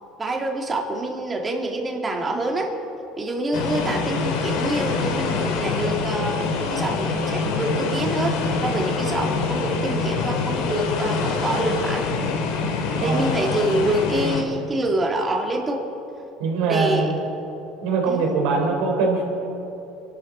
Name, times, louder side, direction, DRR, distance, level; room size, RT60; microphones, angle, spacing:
voice 1, 0.2-2.7 3.2-12.0 13.0-15.9 16.6-17.1 18.1-18.2, right 1 dB, 20° right, 1 dB, 2.2 m, -26 dB
sound 1, 3.5-14.4, left 4 dB, 80° left, 2.2 m, -25 dB
voice 2, 13.0-13.3 16.4-17.3 17.8-19.2, right 4 dB, 80° right, 1 dB, 4.0 m, -22 dB
27.0 x 12.0 x 4.3 m, 3.0 s
cardioid pair, 130°, 0 cm